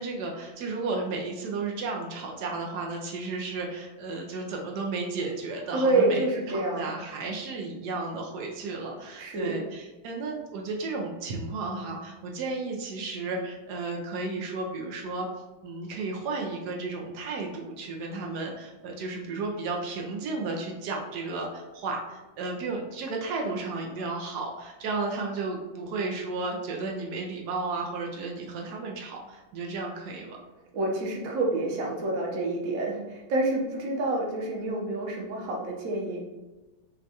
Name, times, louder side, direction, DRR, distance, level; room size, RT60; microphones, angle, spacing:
voice 1, 0.0-15.3 15.6-30.4, right 3 dB, 85° right, 0 dB, 1.2 m, -33 dB
voice 2, 5.7-6.8 9.2-9.6 30.7-36.2, right 2 dB, 60° right, -1 dB, 1.2 m, -28 dB
6.1 x 2.3 x 2.8 m, 1.1 s
omnidirectional pair, 1.7 m